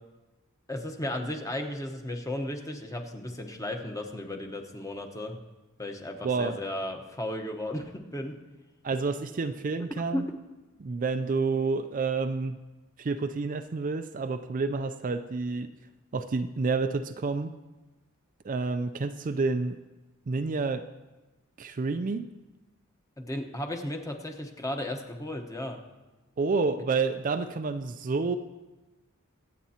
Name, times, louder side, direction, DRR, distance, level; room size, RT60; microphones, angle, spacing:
voice 1, 0.7-5.4 5.8-8.4 10.1-10.3 23.2-25.8, left 1 dB, 15° left, 3 dB, 1.0 m, -35 dB
voice 2, 8.8-10.3 10.8-12.6 13.0-15.7 16.1-17.5 18.4-19.8 20.3-20.8 21.6-22.3 26.4-28.4, right 4 dB, 40° right, 8 dB, 0.4 m, -29 dB
24.0 x 8.4 x 2.9 m, 1.1 s
head